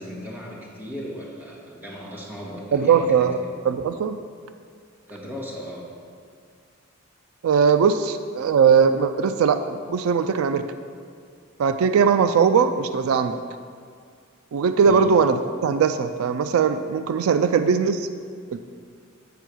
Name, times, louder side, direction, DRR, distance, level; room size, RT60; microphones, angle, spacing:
voice 1, 0.0-3.3 5.1-5.9 14.8-15.1, equal, 10° right, -5 dB, 1.6 m, -36 dB
voice 2, 2.7-4.2 7.4-10.7 11.6-13.4 14.5-18.1, right 6 dB, 90° right, 10 dB, 0.4 m, -20 dB
8.3 x 4.5 x 6.1 m, 2.2 s
head